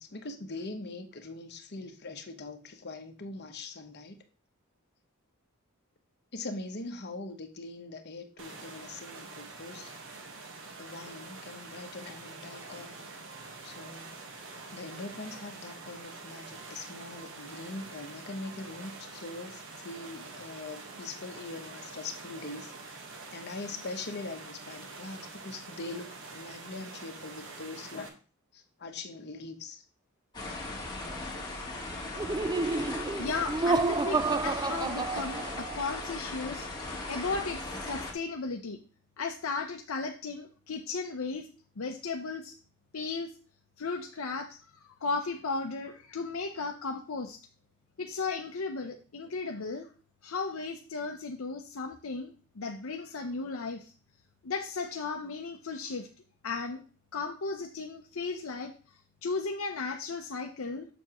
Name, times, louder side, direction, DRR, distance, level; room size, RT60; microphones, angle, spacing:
voice 1, 0.0-4.2 6.3-9.9 10.8-13.1 13.6-14.2 14.7-23.0 23.3-28.2 28.5-29.8, left 3 dB, 50° left, 5 dB, 1.0 m, -42 dB
sound 1, 8.4-28.1, right 3 dB, 60° right, 1.3 m, -46 dB
sound 2, 30.3-38.1, left 2 dB, 20° left, 1.8 m, -38 dB
Laughter, 32.2-35.9, right 3 dB, 20° right, 0.3 m, -30 dB
voice 2, 33.2-36.7 37.1-38.8 39.2-41.5 41.8-42.6 42.9-43.3 43.8-47.4 48.0-49.9 50.2-53.9 54.4-56.1 56.4-56.8 57.1-58.7 59.2-60.9, left 4 dB, 65° left, 3 dB, 0.7 m, -35 dB
7.1 x 7.0 x 3.0 m, 0.37 s
head